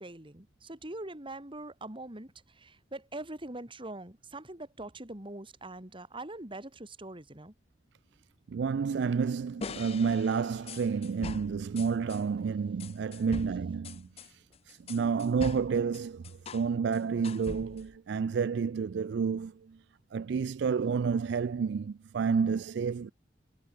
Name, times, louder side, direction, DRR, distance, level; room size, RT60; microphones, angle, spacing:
voice 1, 0.0-7.5, right 2 dB, 30° right, 3.2 m, -43 dB
voice 2, 8.5-19.8 20.1-23.1, right 6 dB, 70° right, 0.4 m, -30 dB
sound 1, 9.6-12.2 12.8-16.7 16.9-18.0, left 4 dB, 35° left, 0.4 m, -42 dB
head